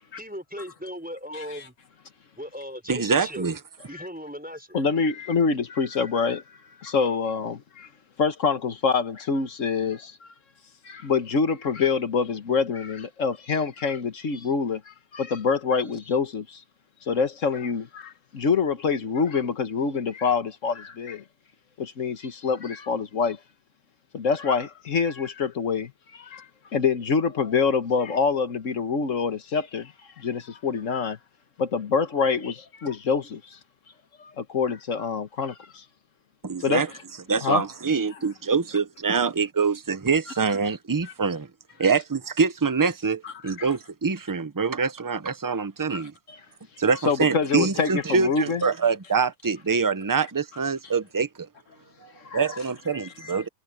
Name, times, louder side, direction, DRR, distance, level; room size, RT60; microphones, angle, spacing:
voice 1, 0.2-1.7 2.4-3.5 3.9-4.8, equal, 5° right, 5.4 m, -37 dB
voice 2, 1.3-1.7 3.9-4.1 4.7-6.4 6.8-7.9 8.2-10.3 10.8-16.6 17.1-21.2 21.8-23.4 24.1-31.2 31.6-33.6 34.2-35.8 36.6-36.8 37.4-37.6 43.2-43.7 45.9-46.0 46.3-46.4 47.0-48.6 52.2-52.6 52.9-53.4, left 5 dB, 60° left, 1.6 m, -26 dB
voice 3, 2.9-3.6 36.4-36.9 37.3-41.5 41.8-46.1 46.8-51.5 52.0-53.5, right 5 dB, 25° right, 0.5 m, -25 dB
omnidirectional pair, 1.5 m